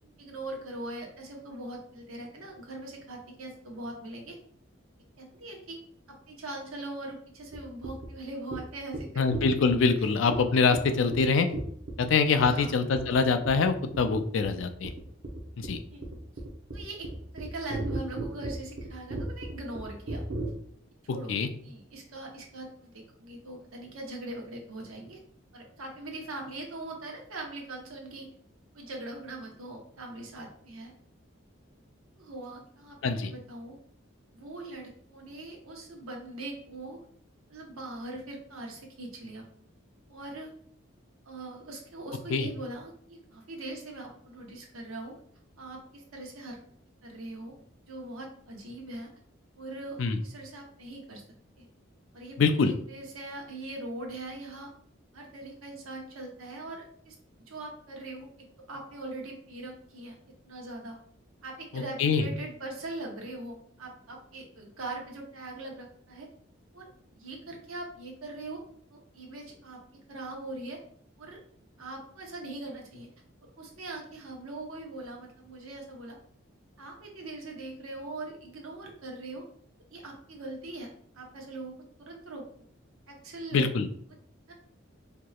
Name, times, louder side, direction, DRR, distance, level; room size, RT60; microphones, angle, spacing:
voice 1, 0.2-4.4 5.2-5.8 6.1-9.3 10.0-10.1 12.4-12.7 15.9-16.0 16.7-17.1 17.3-20.2 21.0-21.3 21.6-25.2 25.5-28.3 28.7-30.9 32.2-33.8 34.3-37.0 37.5-39.5 40.1-40.5 41.2-45.2 45.6-46.6 47.0-47.5 47.9-49.1 49.6-51.2 51.6-51.7 52.1-54.7 55.1-60.2 60.4-61.0 61.4-66.3 66.7-66.9 67.1-68.6 68.9-69.8 70.1-70.8 71.2-71.4 71.8-73.1 73.6-76.2 76.8-79.5 79.9-81.7 82.0-82.4 83.1-83.7 84.5-84.6, right 2 dB, 90° right, 0 dB, 0.9 m, -41 dB
sound 1, 7.5-7.6 7.8-8.1 8.5-8.6 8.9-9.0 9.3-9.9 10.3-10.4 10.7-10.8 11.1-11.2 11.5-12.1 12.4-12.6 12.9-13.2 13.5-13.7 13.9-14.2 14.4-20.5, right 2 dB, 60° right, 0.7 m, -35 dB
voice 2, 9.2-11.5 12.0-14.9 15.6-15.8 21.1-21.5 33.0-33.3 42.3-42.5 50.0-50.2 52.4-52.7 61.7-62.2 83.5-83.9, left 4 dB, 65° left, 8 dB, 0.4 m, -24 dB
4.5 x 2.9 x 2.3 m, 0.62 s
head